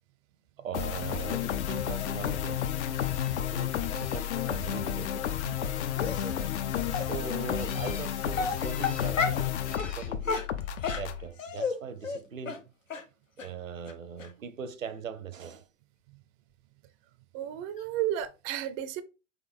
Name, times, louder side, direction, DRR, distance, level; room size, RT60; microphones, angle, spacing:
voice 1, 0.6-2.7 3.5-5.3 7.0-10.5 11.0-12.7 13.4-15.6, right 6 dB, 85° right, 0.7 m, -40 dB
sound 1, 0.7-11.3, left 10 dB, 60° left, 0.6 m, -31 dB
sound 2, 2.9-3.4 3.9-4.6 7.5-8.1 8.5-9.2 9.6-10.1 11.1-11.5 17.8-17.9 18.2-18.3, left 5 dB, 20° left, 0.7 m, -49 dB
voice 2, 5.4-5.9 17.3-19.0, right 11 dB, 25° right, 0.4 m, -33 dB
Dog, 6.0-6.3 6.9-7.1 7.8-8.0 8.3-9.5 9.8-9.9 10.2-11.8 12.0-12.2 12.5-12.6 12.9-13.0 13.4-13.5 13.9-14.0 14.2-14.3, left 5 dB, 85° left, 0.9 m, -31 dB
3.8 x 3.4 x 3.5 m
hypercardioid pair, 105°, 38 cm